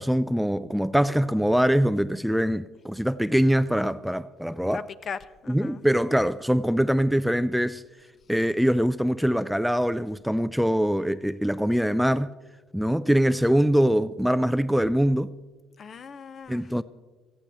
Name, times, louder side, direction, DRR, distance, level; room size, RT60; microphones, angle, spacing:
voice 1, 0.0-4.9 5.5-7.8 8.3-12.3 12.7-15.3 16.5-16.8, equal, ahead, 0.3 m, -23 dB
voice 2, 4.7-5.8 15.8-16.7, left 6 dB, 40° left, 0.6 m, -39 dB
18.0 x 14.5 x 3.4 m
cardioid pair, 105°, 0 cm